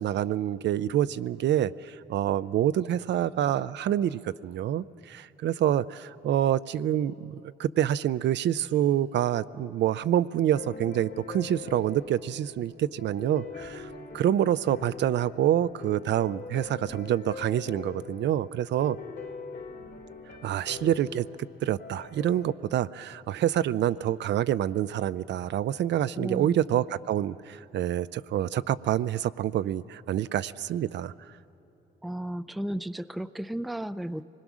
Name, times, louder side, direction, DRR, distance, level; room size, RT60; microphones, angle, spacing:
voice 1, 0.0-19.0 20.4-21.3 21.6-31.1, right 11 dB, 65° right, 15 dB, 0.4 m, -27 dB
sound 1, 10.5-22.5, left 4 dB, 65° left, 2.7 m, -43 dB
voice 2, 26.2-26.6 32.0-34.2, right 1 dB, ahead, 14 dB, 0.4 m, -34 dB
25.0 x 20.5 x 6.1 m, 2.8 s
cardioid pair, 90°, 20 cm